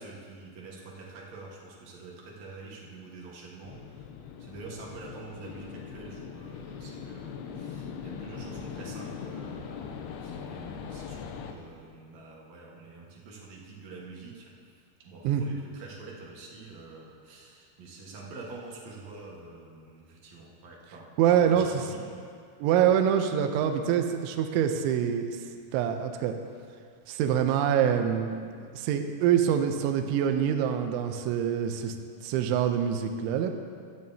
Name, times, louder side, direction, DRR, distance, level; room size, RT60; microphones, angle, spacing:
voice 1, 0.0-4.1 4.4-21.1 21.3-22.3, right 3 dB, 60° right, -3 dB, 2.0 m, -46 dB
sound 1, 3.6-11.5, left 6 dB, 85° left, 2.4 m, -40 dB
voice 2, 21.2-21.8 22.6-25.3 25.7-26.3 27.1-28.4 28.7-31.9 32.2-33.5, right 9 dB, 85° right, 6 dB, 3.1 m, -25 dB
17.0 x 13.0 x 2.8 m, 2.1 s
omnidirectional pair, 5.3 m